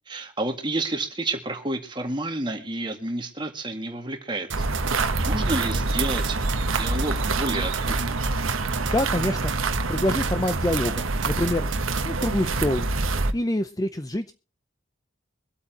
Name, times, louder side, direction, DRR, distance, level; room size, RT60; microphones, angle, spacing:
voice 1, 0.1-4.6 4.9-8.0, right 2 dB, 25° right, 4 dB, 2.0 m, -30 dB
sound 1, 4.5-12.3, right 9 dB, 65° right, 1.0 m, -34 dB
sound 2, 4.5-13.3, right 3 dB, 90° right, 1.2 m, -26 dB
voice 2, 8.8-9.5 9.9-11.7 12.0-12.9 13.3-14.3, left 1 dB, 20° left, 9 dB, 0.6 m, -26 dB
24.0 x 8.4 x 2.9 m, 0.34 s
head